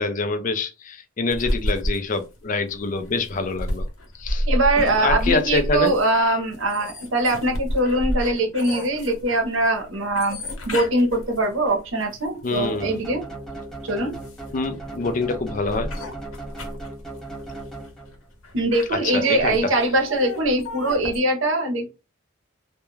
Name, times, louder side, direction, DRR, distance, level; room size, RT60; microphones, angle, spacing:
voice 1, 0.0-3.9 4.1-4.5 4.8-5.9 12.4-13.0 14.5-15.9 18.9-19.7, left 3 dB, 40° left, 0.4 m, -26 dB
sound 1, 1.3-13.0 13.6-21.2, equal, 85° left, 0.8 m, -31 dB
voice 2, 4.5-10.4 10.6-13.2 13.8-14.2 18.5-21.9, right 1 dB, 70° right, 0.8 m, -22 dB
sound 2, 12.5-18.3, right 2 dB, ahead, 0.6 m, -37 dB
2.3 x 2.1 x 3.1 m
head